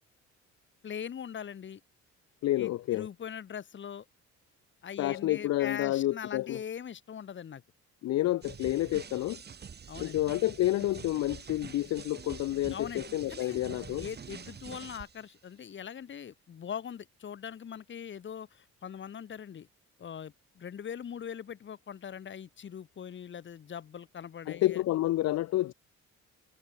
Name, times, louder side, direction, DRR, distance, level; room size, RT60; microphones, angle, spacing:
voice 1, 0.8-1.8 2.6-4.0 4.8-7.6 9.9-10.2 12.7-13.6 14.0-19.7 20.0-24.8, left 8 dB, 40° left, 1.0 m, -41 dB
voice 2, 2.4-3.1 5.0-6.6 8.0-9.4 10.0-14.1 24.5-25.7, left 15 dB, 60° left, 0.5 m, -29 dB
sound 1, 8.4-15.3, right 6 dB, 35° right, 1.0 m, -46 dB
cardioid pair, 90°, 30 cm